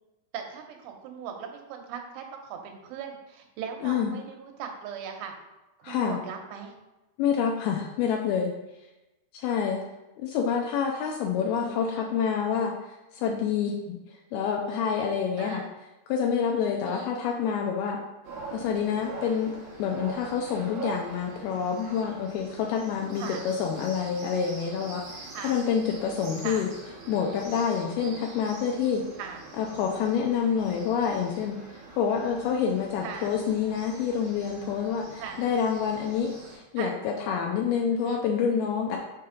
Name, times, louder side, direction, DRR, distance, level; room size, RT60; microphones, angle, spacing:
voice 1, 0.3-5.3 5.8-6.7 11.4-12.1 15.4-15.7 16.8-17.1 23.2-23.4 25.3-25.6 26.4-26.7 29.2-29.4 33.0-33.3 35.2-35.4 36.8-37.0 37.9-38.2, right 7 dB, 85° right, 3 dB, 2.9 m, -39 dB
voice 2, 3.8-4.1 5.8-6.2 7.2-8.5 9.3-9.8 10.2-15.6 16.1-18.0 18.5-26.7 27.1-29.0 29.6-39.0, left 7 dB, 85° left, 1 dB, 2.2 m, -27 dB
sound 1, 18.2-36.6, right 4 dB, 65° right, 1.8 m, -44 dB
6.4 x 4.3 x 3.8 m, 1.0 s
omnidirectional pair, 4.9 m